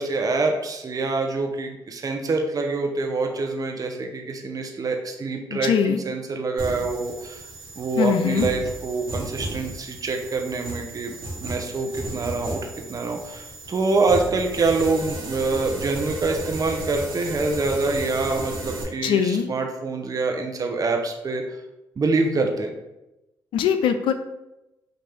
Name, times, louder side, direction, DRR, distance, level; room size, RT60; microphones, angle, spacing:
voice 1, 0.0-7.4 7.8-12.6 12.9-21.4 22.0-22.7, right 3 dB, 45° right, 3 dB, 0.7 m, -25 dB
voice 2, 5.5-6.0 8.0-8.5 19.0-19.5 23.5-24.1, left 8 dB, 80° left, 9 dB, 0.4 m, -21 dB
sound 1, 6.6-18.8, right 1 dB, 75° right, 1.5 m, -34 dB
5.7 x 2.6 x 3.5 m, 0.95 s
supercardioid pair, 55°, 9 cm